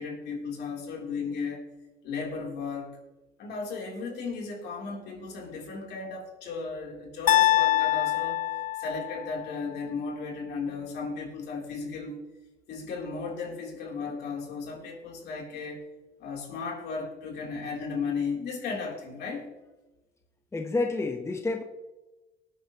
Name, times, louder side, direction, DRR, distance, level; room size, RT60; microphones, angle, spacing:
voice 1, 0.0-1.6 2.0-3.0 3.4-8.4 8.8-12.2 12.7-15.8 16.2-19.4, left 4 dB, 75° left, -1 dB, 3.3 m, -35 dB
sound 1, 7.3-9.4, left 14 dB, 50° left, 0.5 m, -24 dB
voice 2, 20.5-21.6, left 3 dB, 15° left, 4 dB, 1.0 m, -29 dB
18.5 x 9.2 x 3.0 m, 1.1 s
cardioid pair, 110°, 17 cm